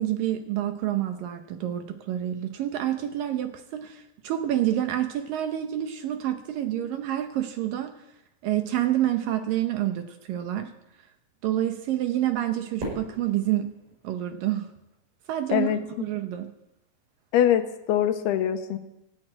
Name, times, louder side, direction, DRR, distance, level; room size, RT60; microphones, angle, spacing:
voice 1, 0.0-7.9 8.4-10.7 11.4-13.7 14.0-14.7 15.3-16.5, right 12 dB, 70° right, 7 dB, 2.3 m, -28 dB
Fireworks, 12.8-15.1, right 1 dB, 55° right, 7.4 m, -40 dB
voice 2, 17.3-18.8, left 10 dB, 80° left, 9 dB, 2.9 m, -23 dB
16.5 x 9.4 x 8.8 m, 0.90 s
omnidirectional pair, 4.7 m